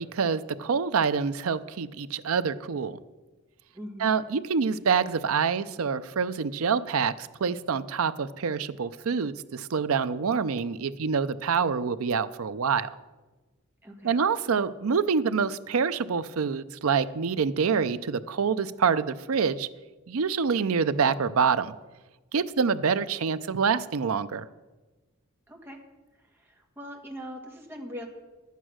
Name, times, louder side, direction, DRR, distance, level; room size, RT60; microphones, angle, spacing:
voice 1, 0.0-3.0 4.0-12.9 14.0-19.7 20.1-21.7 22.3-24.4, right 6 dB, 70° right, 13 dB, 0.5 m, -26 dB
voice 2, 3.7-4.1 13.8-14.2 25.5-25.8 26.1-28.1, equal, 10° right, 1 dB, 1.5 m, -41 dB
11.0 x 8.3 x 6.2 m, 1.2 s
head